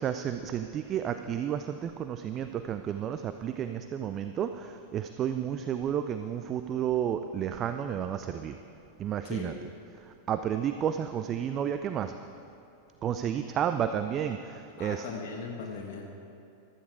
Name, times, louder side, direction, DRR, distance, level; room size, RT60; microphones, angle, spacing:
voice 1, 0.0-8.6 9.0-9.5 10.0-12.1 13.0-15.1, right 9 dB, 30° right, 9 dB, 0.5 m, -31 dB
voice 2, 14.8-16.0, left 5 dB, 50° left, 0 dB, 1.6 m, -38 dB
15.5 x 12.5 x 4.8 m, 2.8 s
figure-of-eight pair, 90°, 0 cm